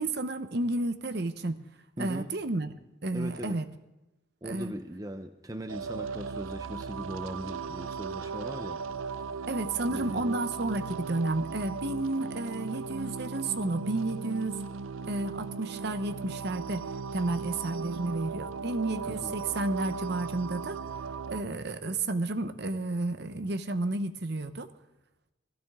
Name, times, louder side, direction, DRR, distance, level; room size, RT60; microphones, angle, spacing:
voice 1, 0.0-1.6 2.0-2.7 3.0-3.6 4.4-4.7 9.5-14.6 15.1-16.8 17.1-20.8 21.3-24.7, right 2 dB, 55° right, 9 dB, 0.9 m, -31 dB
voice 2, 2.0-2.3 3.1-3.6 4.4-8.8 9.3-9.5 9.9-10.4 19.1-19.3, right 1 dB, 15° right, 7 dB, 0.7 m, -39 dB
sound 1, 5.7-21.4, right 5 dB, 80° right, 0.5 m, -37 dB
18.0 x 15.5 x 3.7 m, 0.99 s
head